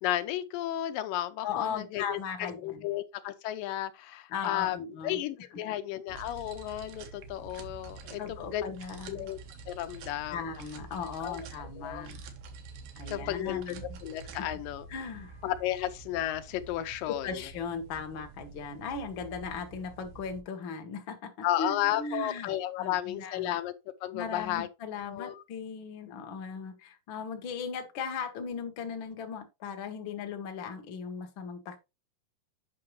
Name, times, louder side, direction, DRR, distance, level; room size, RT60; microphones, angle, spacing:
voice 1, 0.0-4.8 5.0-8.6 9.1-9.4 9.7-10.5 11.2-12.1 13.1-13.8 14.0-14.9 15.4-17.4 21.4-23.7 24.0-24.7 25.1-25.4, left 13 dB, 85° left, 2.3 m, -33 dB
voice 2, 1.4-2.9 4.3-5.2 8.2-9.3 10.3-12.2 13.0-14.0 14.4-14.5 14.9-15.4 17.2-23.6 24.1-31.8, left 5 dB, 55° left, 1.4 m, -38 dB
sound 1, 6.1-20.4, right 4 dB, 80° right, 2.8 m, -47 dB
8.5 x 5.8 x 3.1 m
omnidirectional pair, 3.9 m